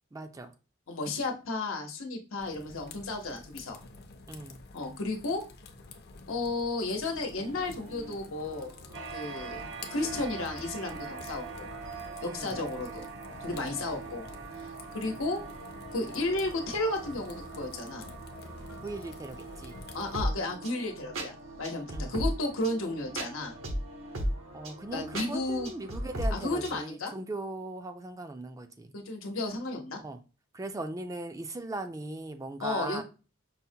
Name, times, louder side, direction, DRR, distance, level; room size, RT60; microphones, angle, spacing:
voice 1, 0.1-0.5 4.3-4.6 12.2-12.6 13.7-13.8 18.8-19.8 21.9-22.1 24.5-28.9 30.0-30.2 30.5-33.0, right 2 dB, 15° right, 0.3 m, -39 dB
voice 2, 0.9-3.8 4.7-5.4 6.3-8.7 9.1-9.6 9.9-11.7 12.2-13.1 13.4-14.3 14.6-15.4 15.9-18.1 19.9-23.6 24.9-25.7 26.3-27.1 28.9-30.0 32.6-33.0, left 2 dB, 90° left, 0.9 m, -33 dB
sound 1, 2.4-20.2, left 3 dB, 55° left, 0.6 m, -49 dB
sound 2, 7.1-26.8, equal, 80° right, 0.9 m, -40 dB
sound 3, 8.9-26.2, right 5 dB, 65° right, 0.6 m, -45 dB
5.5 x 2.1 x 2.7 m
head